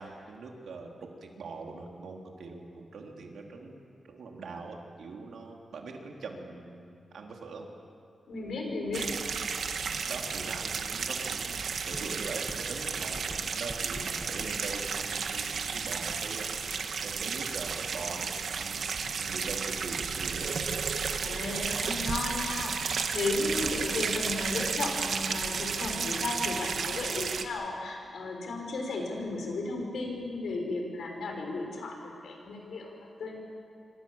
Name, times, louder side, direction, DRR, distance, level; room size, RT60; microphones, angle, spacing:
voice 1, 0.0-7.7 10.1-11.6 11.9-16.5 17.0-18.3 18.6-18.8 19.2-20.5, right 3 dB, 90° right, 1 dB, 3.5 m, -42 dB
voice 2, 8.3-9.2 21.2-33.4, left 3 dB, 85° left, 2 dB, 6.1 m, -34 dB
sound 1, 8.9-27.4, right 5 dB, 70° right, 1.5 m, -33 dB
Writing, 11.6-16.6, equal, 5° left, 1.6 m, -48 dB
26.5 x 26.0 x 7.3 m, 2.5 s
wide cardioid pair, 165°, 0 cm